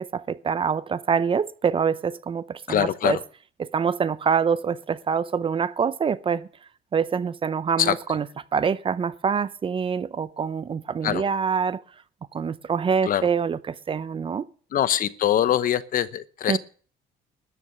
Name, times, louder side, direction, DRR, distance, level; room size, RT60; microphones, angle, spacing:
voice 1, 0.0-3.2 3.6-6.5 6.9-8.2 8.5-11.8 12.3-14.5 16.5-16.6, right 6 dB, 30° right, 0.6 m, -25 dB
voice 2, 2.7-3.2 7.8-8.2 11.0-11.2 13.0-13.3 14.7-16.6, left 11 dB, 55° left, 0.9 m, -23 dB
13.5 x 6.9 x 8.9 m
cardioid pair, 110°, 17 cm